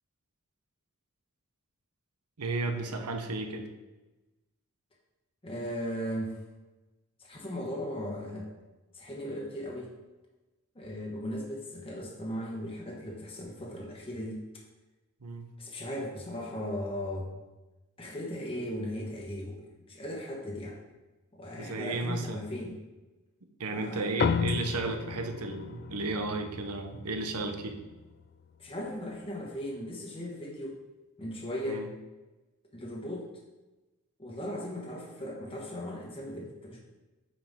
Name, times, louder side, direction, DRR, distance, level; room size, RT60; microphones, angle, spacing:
voice 1, 2.4-3.7 15.2-15.5 21.6-22.4 23.6-27.8 31.6-31.9, right 3 dB, 80° right, 5 dB, 0.9 m, -33 dB
voice 2, 5.4-6.4 7.2-8.5 8.9-9.9 10.7-14.4 15.6-17.3 18.0-19.6 19.9-20.8 21.3-22.8 23.7-24.1 28.6-30.8 31.2-31.8 32.7-33.3 34.2-36.8, equal, 25° left, -3 dB, 1.2 m, -37 dB
sound 1, 24.2-28.9, left 6 dB, 45° left, 0.3 m, -34 dB
9.2 x 4.9 x 3.7 m, 1.1 s
head